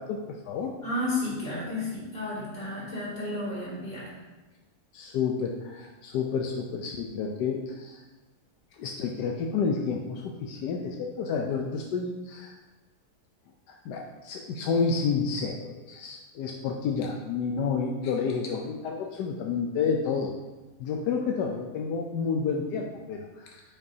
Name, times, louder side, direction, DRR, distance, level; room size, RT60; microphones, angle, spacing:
voice 1, 0.0-0.8 4.9-8.0 8.8-12.6 13.7-20.3 20.8-23.6, left 5 dB, 80° left, 1 dB, 1.2 m, -30 dB
voice 2, 0.8-4.1, left 2 dB, 35° left, -7 dB, 2.8 m, -32 dB
8.7 x 5.7 x 2.7 m, 1.2 s
omnidirectional pair, 1.7 m